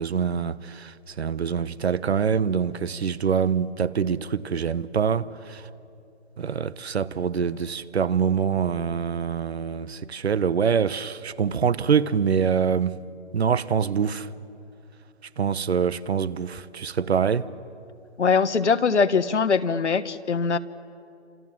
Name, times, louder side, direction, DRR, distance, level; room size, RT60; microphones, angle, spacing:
voice 1, 0.0-5.7 6.4-13.0 13.3-14.3 15.4-17.5, right 7 dB, 65° right, 1.1 m, -25 dB
voice 2, 18.2-20.6, left 5 dB, 75° left, 1.4 m, -22 dB
29.5 x 27.0 x 7.5 m
hypercardioid pair, 155°, 35 cm